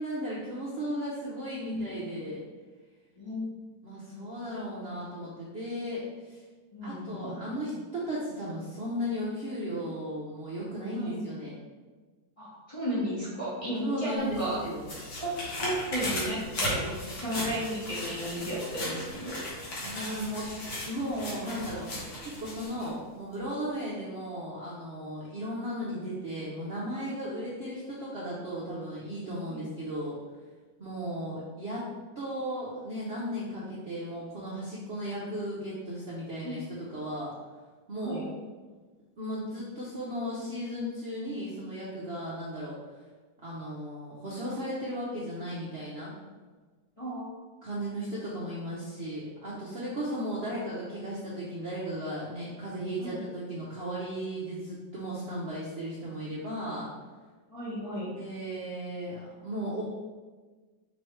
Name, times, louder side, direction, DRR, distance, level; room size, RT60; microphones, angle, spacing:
voice 1, 0.0-2.4 3.8-6.4 6.8-11.5 13.8-14.8 19.8-20.5 20.9-30.2 30.8-31.9 32.2-36.6 36.9-37.3 37.9-38.2 39.2-42.7 43.4-46.1 47.6-56.9 58.1-59.8, equal, 50° right, -7 dB, 0.7 m, -35 dB
voice 2, 1.5-2.0 3.2-3.4 4.4-4.5 6.7-7.4 10.9-11.2 12.4-14.6 15.0-15.3 15.6-19.4 29.4-29.6 36.4-36.6 38.0-38.3 47.0-47.3 53.0-53.2 57.5-58.1, equal, 25° left, -9 dB, 0.9 m, -34 dB
sound 1, 14.2-22.9 23.3-23.4, left 1 dB, 70° left, 1.8 m, -37 dB
5.2 x 3.2 x 3.1 m, 1.4 s
omnidirectional pair, 1.9 m